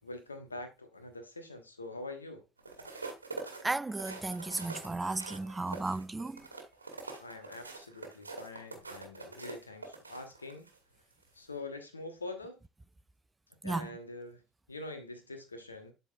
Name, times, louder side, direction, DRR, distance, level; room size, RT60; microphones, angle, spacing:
voice 1, 0.0-2.4 7.2-10.7 11.3-12.6 13.6-14.4 14.7-15.9, left 2 dB, 85° left, 1.1 m, -44 dB
sound 1, 2.6-10.8 11.2-11.4, right 3 dB, 85° right, 1.2 m, -45 dB
voice 2, 3.6-6.5 13.6-13.9, right 3 dB, 15° right, 0.3 m, -34 dB
11.5 x 4.0 x 2.3 m
figure-of-eight pair, 55°, 0 cm